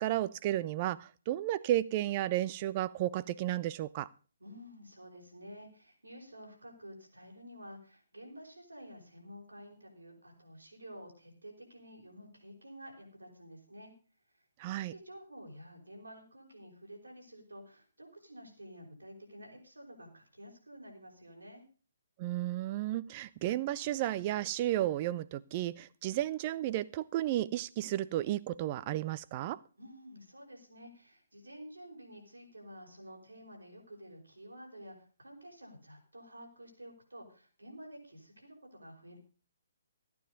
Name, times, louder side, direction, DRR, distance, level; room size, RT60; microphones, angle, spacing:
voice 1, 0.0-4.1 14.6-14.9 22.2-29.6, right 14 dB, 30° right, 17 dB, 0.6 m, -33 dB
voice 2, 4.4-13.9 14.9-21.6 29.8-39.2, equal, 75° right, 1 dB, 5.1 m, -51 dB
14.5 x 9.5 x 5.2 m, 0.37 s
figure-of-eight pair, 130°, 0 cm